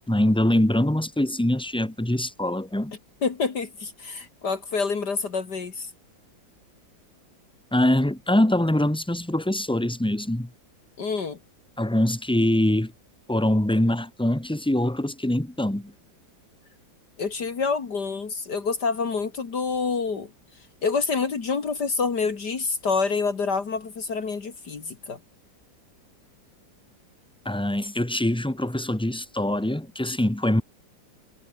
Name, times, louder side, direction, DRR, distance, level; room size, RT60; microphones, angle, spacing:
voice 1, 0.1-2.9 7.7-10.5 11.8-12.9 13.3-15.9 27.4-30.6, left 1 dB, 5° left, 1.5 m, -23 dB
voice 2, 3.2-5.9 11.0-11.4 17.2-20.3 20.8-25.2, left 4 dB, 60° left, 2.8 m, -27 dB
omnidirectional pair, 2.0 m